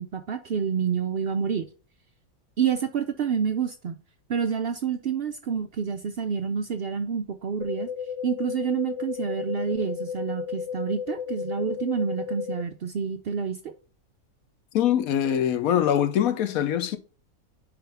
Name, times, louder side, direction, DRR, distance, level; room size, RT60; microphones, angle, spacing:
voice 1, 0.0-1.7 2.6-4.0 4.3-7.9 8.2-13.7, right 7 dB, 60° right, 0.6 m, -28 dB
sound 1, 7.6-12.6, left 7 dB, 60° left, 1.0 m, -33 dB
voice 2, 14.7-17.0, left 10 dB, 75° left, 1.2 m, -23 dB
9.7 x 3.3 x 3.4 m
omnidirectional pair, 1.5 m